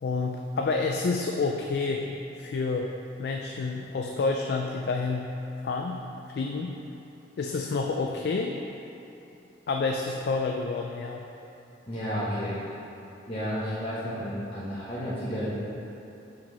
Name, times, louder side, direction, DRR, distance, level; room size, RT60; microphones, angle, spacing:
voice 1, 0.0-2.1 2.4-2.9 3.2-5.3 5.6-6.1 6.3-6.8 7.4-8.6 9.7-11.3, left 4 dB, 55° left, 2 dB, 0.3 m, -29 dB
voice 2, 11.9-12.7 13.3-15.5, equal, 30° left, -13 dB, 1.2 m, -32 dB
5.5 x 5.5 x 4.0 m, 2.8 s
head